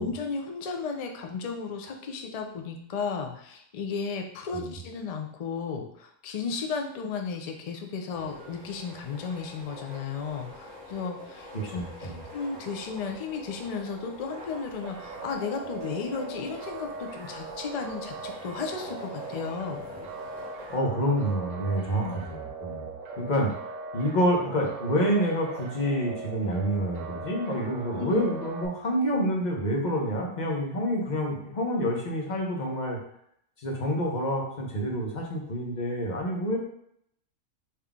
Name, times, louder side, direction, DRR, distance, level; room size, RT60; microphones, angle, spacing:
voice 1, 0.0-19.8 22.0-22.2 28.0-28.2, left 5 dB, 80° left, 4 dB, 0.3 m, -34 dB
sound 1, 8.1-20.8, left 1 dB, 20° right, 1.3 m, -45 dB
voice 2, 11.5-12.2 20.7-22.9 23.2-23.5 23.9-33.0 33.6-36.6, equal, 40° left, -1 dB, 0.9 m, -28 dB
sound 2, 14.8-28.7, right 4 dB, 90° right, 1.0 m, -40 dB
3.7 x 2.8 x 3.5 m, 0.70 s
omnidirectional pair, 1.3 m